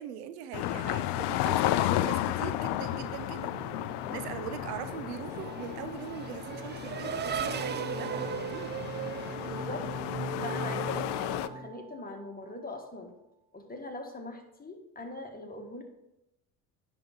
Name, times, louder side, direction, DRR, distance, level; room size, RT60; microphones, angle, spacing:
voice 1, 0.0-3.5 4.1-8.8 10.6-10.7, right 10 dB, 90° right, 11 dB, 0.6 m, -41 dB
Amazing street ambience sounds, 0.5-11.5, left 14 dB, 60° left, 0.5 m, -33 dB
sound 1, 2.1-12.3, equal, 50° right, 2.0 m, -41 dB
Race car auto racing / Accelerating revving vroom, 4.3-10.4, right 8 dB, 25° right, 0.4 m, -38 dB
voice 2, 9.4-9.9 10.4-13.1 13.5-15.8, left 2 dB, 20° left, 3 dB, 1.5 m, -41 dB
10.0 x 3.7 x 4.4 m, 0.87 s
hypercardioid pair, 65°, 46 cm